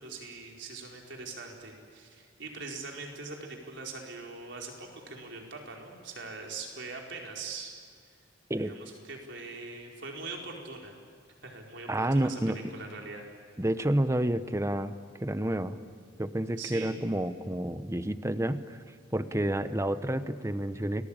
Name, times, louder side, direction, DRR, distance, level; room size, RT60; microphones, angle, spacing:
voice 1, 0.0-7.7 8.6-11.0 11.4-12.4 12.7-13.3 16.6-17.0, right 3 dB, 65° right, 0 dB, 4.7 m, -42 dB
voice 2, 11.9-12.6 13.6-14.9 15.2-15.8 16.2-18.8 19.1-21.1, right 1 dB, 15° right, 11 dB, 0.8 m, -29 dB
29.0 x 20.0 x 8.9 m, 2.1 s
head